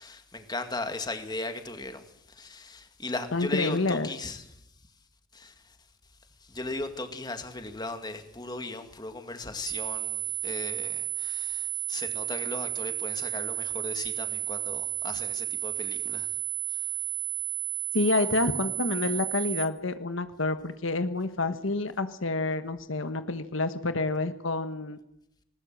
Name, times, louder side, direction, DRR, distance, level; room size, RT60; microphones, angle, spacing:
voice 1, 0.0-4.6 5.3-5.8 6.4-16.4 16.7-16.9, left 2 dB, 20° left, 2.1 m, -37 dB
voice 2, 3.3-4.1 17.9-25.0, left 2 dB, 75° left, 1.3 m, -28 dB
sound 1, 9.7-19.7, right 13 dB, 55° right, 1.4 m, -32 dB
20.0 x 20.0 x 7.7 m
head